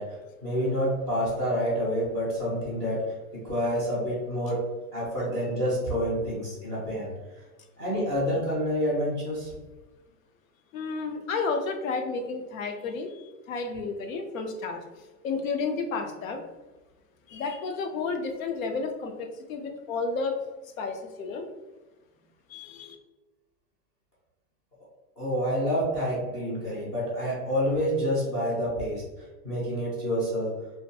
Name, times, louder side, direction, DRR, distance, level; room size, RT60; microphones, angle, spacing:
voice 1, 0.0-3.0 3.4-4.6 4.9-7.1 7.8-9.5 25.2-30.5, equal, 10° left, -10 dB, 0.5 m, -28 dB
voice 2, 10.7-14.8 15.2-16.4 17.3-20.4 20.8-21.4 22.5-23.0, left 4 dB, 60° left, 4 dB, 0.5 m, -31 dB
2.4 x 2.1 x 2.7 m, 1.1 s
hypercardioid pair, 145°, 46 cm